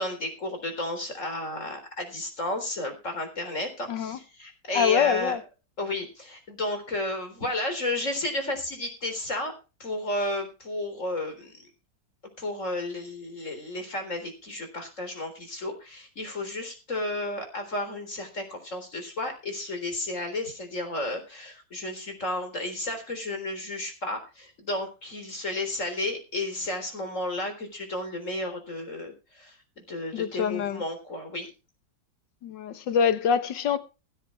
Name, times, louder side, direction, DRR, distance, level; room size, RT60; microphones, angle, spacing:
voice 1, 0.0-5.4 5.8-9.5 9.8-11.5 12.4-31.5, left 1 dB, 40° left, 4.0 m, -32 dB
voice 2, 3.9-4.2 4.7-5.4 30.1-30.8 32.4-33.8, left 7 dB, 80° left, 1.8 m, -25 dB
16.0 x 8.2 x 4.4 m
omnidirectional pair, 1.9 m